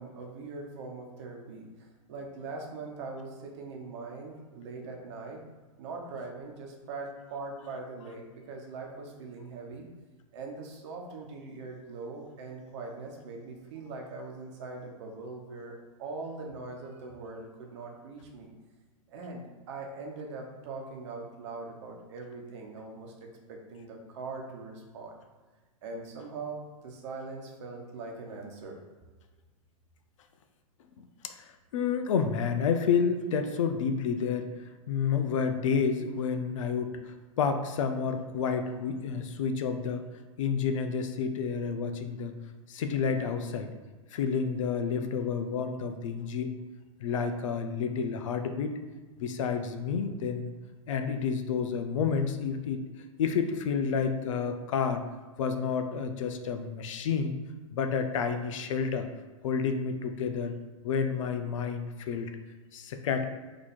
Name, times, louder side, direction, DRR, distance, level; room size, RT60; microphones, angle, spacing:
voice 1, 0.0-5.4 5.8-9.9 10.3-15.7 16.0-18.5 19.1-25.1 25.8-28.8, right 3 dB, 55° right, 1 dB, 1.0 m, -41 dB
voice 2, 31.0-40.0 40.4-42.3 42.7-43.7 44.1-46.6 47.0-48.8 49.2-50.5 50.9-52.8 53.2-55.0 55.4-57.4 57.7-59.1 59.4-60.5 60.8-62.3 62.7-63.3, left 6 dB, 60° left, 8 dB, 0.5 m, -30 dB
4.1 x 2.9 x 4.3 m, 1.3 s
hypercardioid pair, 115°, 18 cm